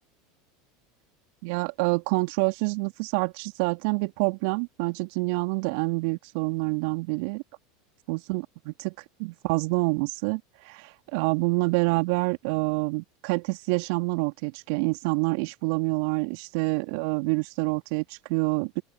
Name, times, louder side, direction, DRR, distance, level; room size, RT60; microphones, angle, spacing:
voice 1, 1.4-7.4 8.1-8.9 9.2-18.8, right 29 dB, 60° right, 3.1 m, -27 dB
open air
hypercardioid pair, 80°, 0 cm